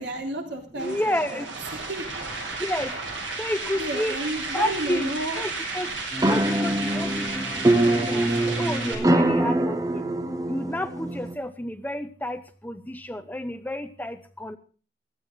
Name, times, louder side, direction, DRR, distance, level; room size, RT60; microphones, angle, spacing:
voice 1, 0.0-1.4 1.9-2.2 3.8-5.5, right 2 dB, 70° right, 2 dB, 3.7 m, -32 dB
voice 2, 0.7-1.5 2.6-3.0 3.4-4.2 4.5-5.1 5.3-5.9 6.2-10.0 10.5-14.6, left 1 dB, 10° left, 10 dB, 0.7 m, -31 dB
sound 1, 0.8-8.9, right 3 dB, 85° right, 7.2 m, -33 dB
sound 2, 6.1-11.3, right 1 dB, 20° right, 1.0 m, -24 dB
16.5 x 14.0 x 3.9 m, 0.38 s
head